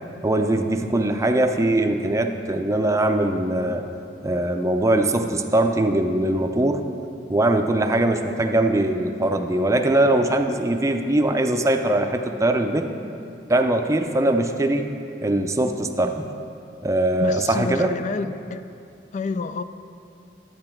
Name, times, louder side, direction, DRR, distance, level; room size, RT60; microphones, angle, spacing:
voice 1, 0.2-3.8 4.2-6.8 7.3-12.9 13.5-14.9 15.2-16.3 16.8-18.0, right 1 dB, 15° right, 5 dB, 0.5 m, -21 dB
voice 2, 17.2-18.7 19.1-19.6, left 4 dB, 40° left, 12 dB, 0.3 m, -29 dB
10.5 x 8.7 x 4.5 m, 2.6 s
head